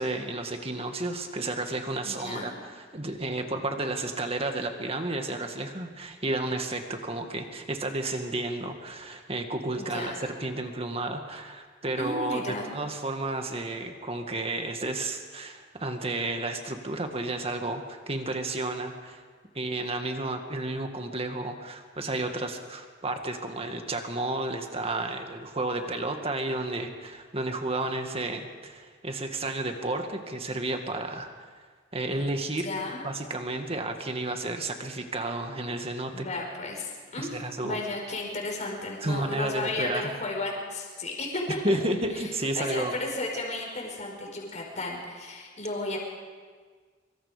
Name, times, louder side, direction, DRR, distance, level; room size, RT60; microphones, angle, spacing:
voice 1, 0.0-10.1 10.4-19.2 19.5-31.3 31.9-32.7 33.0-36.3 37.2-37.8 39.0-40.1 41.6-42.9, right 2 dB, 35° right, 5 dB, 2.1 m, -32 dB
voice 2, 2.0-2.5 9.7-10.3 11.9-12.7 32.0-32.1 32.6-33.0 36.1-41.6 42.1-42.3 42.5-46.0, left 2 dB, 40° left, -1 dB, 5.1 m, -34 dB
24.5 x 24.5 x 5.2 m, 1.5 s
head